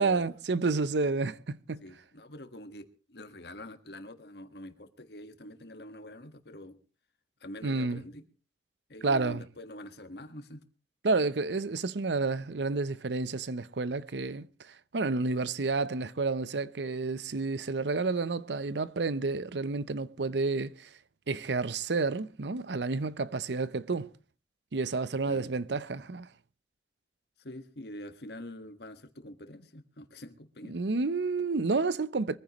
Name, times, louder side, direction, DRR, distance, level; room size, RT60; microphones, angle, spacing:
voice 1, 0.0-1.8 7.6-8.0 9.0-9.4 11.0-20.9 21.3-24.1 24.7-26.3 30.7-32.4, right 3 dB, 80° right, 0.7 m, -30 dB
voice 2, 1.8-6.8 7.4-8.2 8.9-10.6 25.2-25.5 27.4-30.8, left 1 dB, 65° left, 1.6 m, -45 dB
23.5 x 15.0 x 3.1 m
head